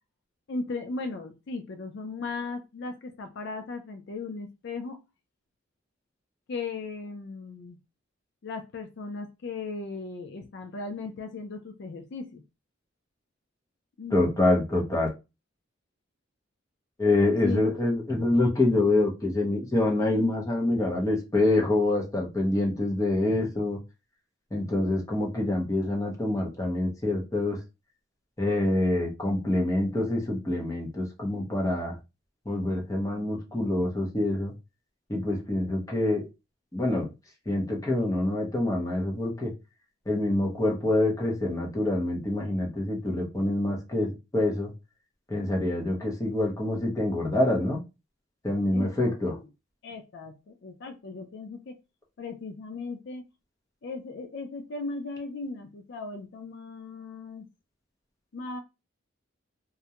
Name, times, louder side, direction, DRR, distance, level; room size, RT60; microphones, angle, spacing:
voice 1, 0.5-5.0 6.5-7.8 8.4-12.4 14.0-14.3 17.4-17.6 48.7-49.4 49.8-51.8 52.2-53.2 53.8-57.5 58.3-58.6, left 3 dB, 60° left, 6 dB, 0.4 m, -37 dB
voice 2, 14.1-15.1 17.0-23.8 24.5-27.6 28.4-31.9 32.5-34.5 35.1-36.3 36.7-37.1 37.5-39.5 40.1-44.7 45.3-47.8 48.4-49.4, left 2 dB, 15° left, 0 dB, 0.7 m, -26 dB
2.3 x 2.1 x 2.8 m, 0.26 s
head